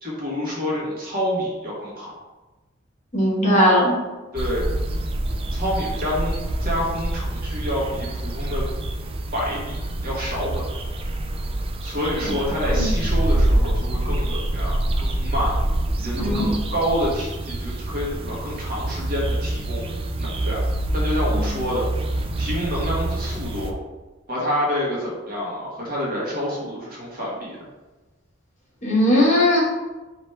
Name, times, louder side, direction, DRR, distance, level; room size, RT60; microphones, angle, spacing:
voice 1, 0.0-2.1 4.3-4.6 5.5-8.6 9.3-10.6 11.8-15.6 16.0-19.9 20.2-20.6 20.9-21.8 22.4-23.7 24.3-27.6, equal, 45° right, -5 dB, 1.3 m, -28 dB
voice 2, 3.1-3.9 12.2-12.4 12.7-12.9 16.1-16.4 21.3-21.4 28.8-29.6, left 1 dB, 35° left, -6 dB, 1.3 m, -18 dB
sound 1, 4.4-23.7, right 1 dB, 30° right, 0.3 m, -26 dB
3.2 x 2.9 x 4.5 m, 1.2 s
head